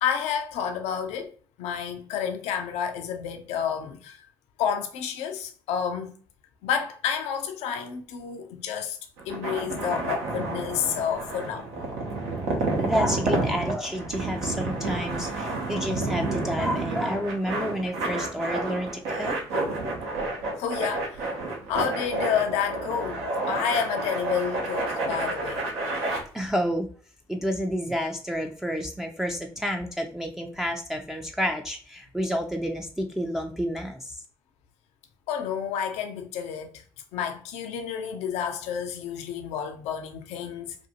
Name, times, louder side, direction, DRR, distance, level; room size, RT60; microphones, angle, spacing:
voice 1, 0.0-1.3 1.6-4.2 4.6-6.2 6.6-9.0 9.3-11.7 20.6-21.3 21.7-26.2 35.3-36.8 37.1-40.8, left 8 dB, 70° left, 0.5 m, -30 dB
sound 1, 9.2-26.2, right 2 dB, 80° right, 0.7 m, -30 dB
voice 2, 12.8-19.4 26.3-26.9 27.3-34.2, equal, 5° right, 0.4 m, -29 dB
2.6 x 2.4 x 2.7 m
hypercardioid pair, 50°, 12 cm